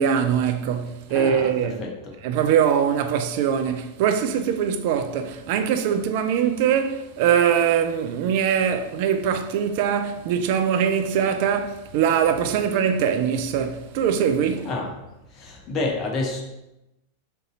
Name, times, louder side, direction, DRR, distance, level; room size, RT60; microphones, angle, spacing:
voice 1, 0.0-1.8 2.2-14.7, right 8 dB, 50° right, 0.3 m, -22 dB
voice 2, 1.1-2.1 8.7-9.1 10.1-10.5 14.6-14.9 15.4-16.4, left 3 dB, 30° left, 0.8 m, -30 dB
3.7 x 2.6 x 4.0 m
figure-of-eight pair, 90°, 0 cm